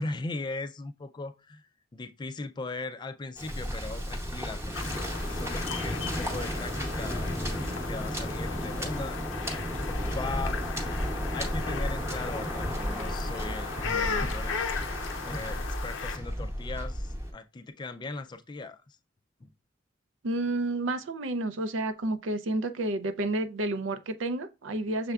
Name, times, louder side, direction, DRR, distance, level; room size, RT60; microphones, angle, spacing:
voice 1, 0.0-9.2 9.7-14.7 15.2-19.0 19.4-19.5, left 3 dB, 25° left, 0.3 m, -39 dB
Waves surf, 3.4-17.3, equal, 15° right, 0.8 m, -33 dB
sound 1, 4.7-16.2, left 5 dB, 85° left, 0.6 m, -37 dB
voice 2, 20.2-25.1, right 2 dB, 85° right, 0.5 m, -30 dB
6.5 x 3.4 x 2.3 m
head